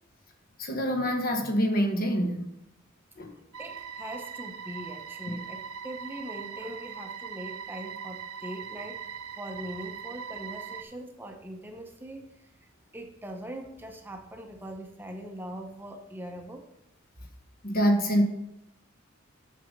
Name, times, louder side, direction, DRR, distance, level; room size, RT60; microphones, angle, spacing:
voice 1, 0.6-2.5 3.2-3.3 5.3-5.4 17.6-18.2, equal, 45° left, 5 dB, 1.1 m, -26 dB
sound 1, 3.5-10.8, right 7 dB, 90° right, 0.7 m, -40 dB
voice 2, 3.6-16.7, right 1 dB, 10° right, 4 dB, 0.8 m, -42 dB
6.9 x 6.4 x 5.2 m, 0.87 s
head